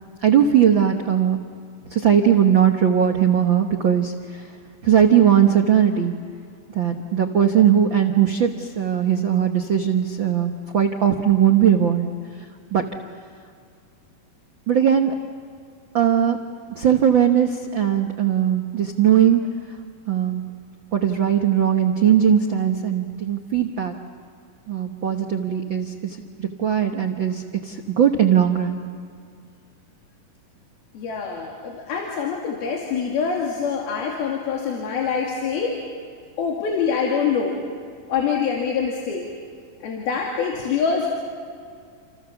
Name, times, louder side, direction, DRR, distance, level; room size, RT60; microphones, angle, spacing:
voice 1, 0.2-1.4 1.9-4.5 4.8-6.1 6.7-12.1 12.7-12.8 14.7-15.1 15.9-16.4 16.7-19.4 20.1-20.5 20.9-24.0 24.7-28.8, right 9 dB, 75° right, 4 dB, 1.1 m, -19 dB
voice 2, 30.9-35.8 36.4-37.6 38.1-39.2 39.8-41.1, left 6 dB, 80° left, -1 dB, 4.4 m, -25 dB
30.0 x 27.5 x 7.1 m, 2.2 s
omnidirectional pair, 4.3 m